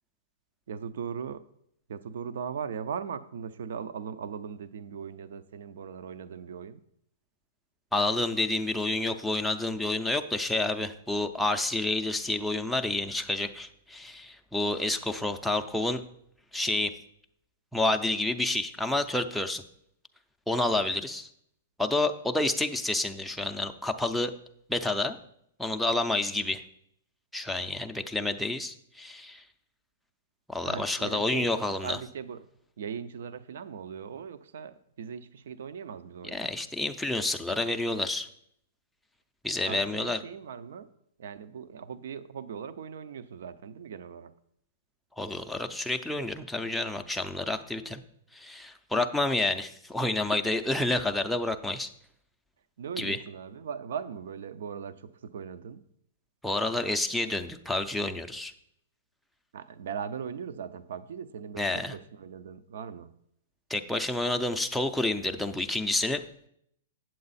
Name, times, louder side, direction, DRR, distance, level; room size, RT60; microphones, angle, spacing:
voice 1, 0.7-1.4 1.9-6.8 30.6-32.5 32.8-36.5 39.7-40.9 41.2-44.3 48.9-49.0 52.8-55.8 59.5-63.2, right 7 dB, 70° right, 13 dB, 0.5 m, -39 dB
voice 2, 7.9-16.0 16.5-16.9 17.7-19.6 20.5-21.3 21.8-24.3 24.7-25.2 25.6-26.6 27.3-29.4 30.5-32.0 36.3-38.3 39.4-40.2 45.2-48.0 48.3-51.9 53.0-53.2 56.4-58.5 61.6-61.9 63.7-66.2, left 2 dB, ahead, 4 dB, 0.4 m, -29 dB
8.6 x 7.6 x 4.1 m, 0.71 s
hypercardioid pair, 160°, 0 cm